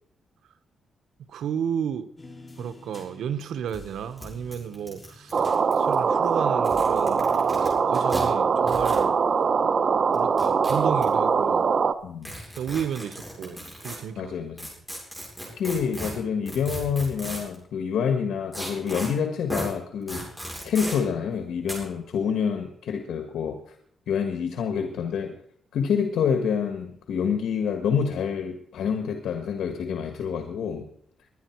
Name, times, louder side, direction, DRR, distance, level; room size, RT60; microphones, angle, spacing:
voice 1, 1.2-2.1 2.6-5.5 5.7-9.2 10.1-11.6 12.6-14.3, right 8 dB, 85° right, 1.2 m, -32 dB
sound 1, 2.2-6.3 6.7-9.0, left 2 dB, 25° left, 3.1 m, -47 dB
sound 2, 3.4-3.5 3.7-3.8 4.2-4.3 4.5-5.9 6.5-7.7 8.1-8.2 8.7-9.0 10.1-11.0 12.2-14.0 14.6-17.6 18.5-19.1 19.5-19.7 20.1-21.0 21.7-21.8, equal, ahead, 7.9 m, -35 dB
sound 3, 5.3-11.9, right 5 dB, 50° right, 0.9 m, -22 dB
voice 2, 14.2-14.7 15.6-20.3 20.6-23.7 24.1-25.4 25.7-30.9, left 7 dB, 85° left, 1.6 m, -27 dB
22.5 x 10.5 x 4.7 m
cardioid pair, 110°, 0 cm